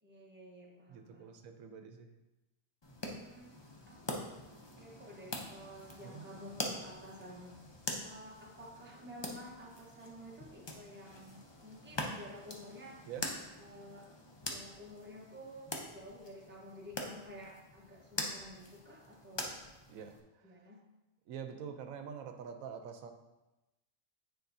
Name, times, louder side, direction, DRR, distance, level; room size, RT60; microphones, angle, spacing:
voice 1, 0.0-1.3 3.1-3.6 3.9-4.1 4.8-7.5 8.0-13.1 13.6-14.1 14.4-19.6 20.4-20.9, equal, 10° right, -2 dB, 0.8 m, -51 dB
voice 2, 0.9-2.1 6.0-6.2 13.1-13.2 19.9-20.5 21.3-23.1, right 7 dB, 85° right, 6 dB, 1.0 m, -46 dB
sound 1, 2.8-20.2, left 2 dB, 35° left, 0.4 m, -44 dB
9.2 x 4.4 x 2.6 m, 1.0 s
omnidirectional pair, 1.4 m